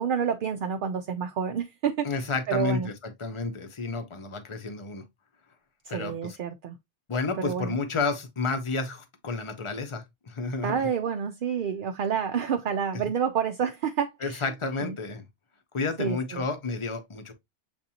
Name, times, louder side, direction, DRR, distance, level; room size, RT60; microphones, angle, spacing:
voice 1, 0.0-2.9 5.9-6.8 7.4-7.7 10.6-14.4 14.8-15.0 16.0-16.4, right 7 dB, 60° right, 0.6 m, -29 dB
voice 2, 2.0-5.0 5.9-6.4 7.1-10.8 12.9-13.0 14.2-15.3 15.7-17.3, left 4 dB, 30° left, 0.7 m, -31 dB
7.1 x 2.6 x 2.7 m
omnidirectional pair, 1.2 m